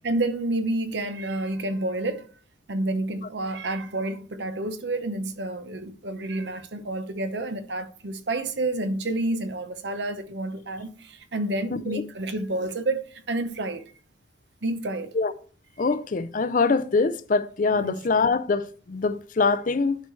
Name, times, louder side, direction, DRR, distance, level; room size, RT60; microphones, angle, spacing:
voice 1, 0.0-2.3 2.7-13.8 14.6-15.1 17.7-18.0, right 2 dB, 65° right, 0.8 m, -29 dB
voice 2, 11.7-12.0 15.1-15.3 15.8-20.0, left 4 dB, 45° left, 0.5 m, -24 dB
11.5 x 4.7 x 3.2 m
head